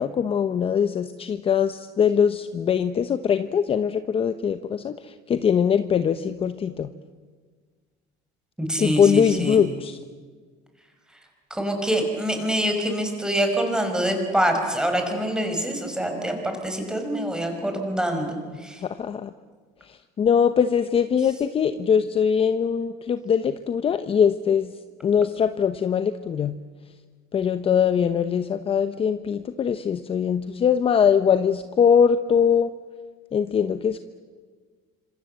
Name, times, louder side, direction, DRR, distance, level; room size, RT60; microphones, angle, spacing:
voice 1, 0.0-6.9 8.8-10.0 18.8-19.3 19.9-24.7 25.0-26.6 27.3-32.7 33.3-34.0, left 7 dB, 30° left, 10 dB, 0.9 m, -22 dB
voice 2, 8.6-9.6 11.1-11.2 11.5-18.8, right 1 dB, 5° right, 4 dB, 5.4 m, -25 dB
27.5 x 26.0 x 8.0 m, 1.5 s
cardioid pair, 135°, 18 cm